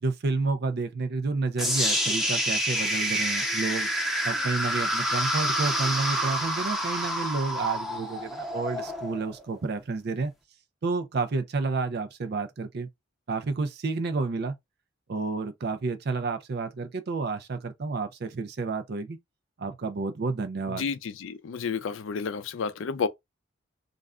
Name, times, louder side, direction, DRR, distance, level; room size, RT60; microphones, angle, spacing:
voice 1, 0.0-3.9 4.2-10.3 10.8-12.9 13.3-14.6 15.1-19.2 19.6-20.9, right 4 dB, 55° right, 0.5 m, -30 dB
sound 1, 1.6-9.6, equal, ahead, 0.6 m, -28 dB
voice 2, 20.7-23.1, left 5 dB, 75° left, 0.4 m, -31 dB
2.4 x 2.2 x 3.5 m
head